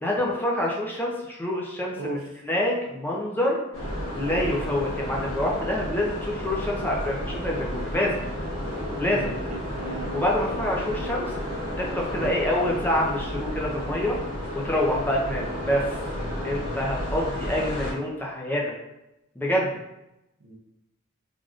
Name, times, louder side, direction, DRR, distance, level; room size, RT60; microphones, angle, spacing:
voice 1, 0.0-2.2 2.5-3.6 4.2-8.2 9.0-9.4 10.1-11.4 11.8-14.2 14.5-15.9 16.4-18.7 19.4-19.8, left 1 dB, 10° left, -2 dB, 0.4 m, -26 dB
voice 2, 2.0-2.4 9.1-10.2 12.2-12.3 20.4-20.6, right 3 dB, 70° right, 1 dB, 0.6 m, -36 dB
sound 1, 3.7-17.9, equal, 85° left, 1.3 m, -32 dB
3.3 x 2.5 x 2.4 m, 0.90 s
head